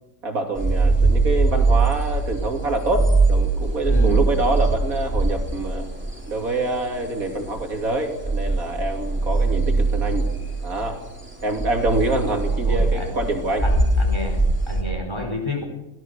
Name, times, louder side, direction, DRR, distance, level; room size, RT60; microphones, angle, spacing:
voice 1, 0.2-5.9 6.3-10.3 10.6-11.0 11.4-13.6, right 2 dB, 85° right, 4 dB, 3.2 m, -25 dB
sound 1, 0.6-6.2 6.7-6.8 7.2-7.9 8.2-14.8, right 3 dB, 10° right, 3.5 m, -21 dB
voice 2, 3.9-4.2 12.3-13.1 13.6-15.6, left 1 dB, 20° left, 2 dB, 4.6 m, -30 dB
22.5 x 17.0 x 6.9 m, 0.96 s
omnidirectional pair, 1.4 m